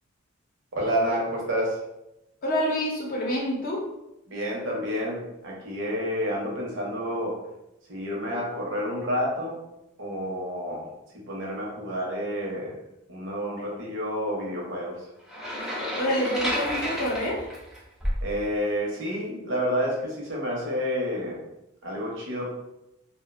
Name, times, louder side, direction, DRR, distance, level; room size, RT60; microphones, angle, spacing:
voice 1, 0.7-1.8 4.3-7.4 7.9-9.7 10.0-12.8 13.1-15.1 18.2-21.4 21.8-22.5, equal, 65° right, -3 dB, 0.7 m, -29 dB
voice 2, 2.4-3.9 15.9-17.5, equal, 45° left, -2 dB, 0.6 m, -27 dB
sound 1, 15.3-18.3, equal, 5° right, 0.4 m, -30 dB
2.4 x 2.1 x 2.4 m, 0.88 s
head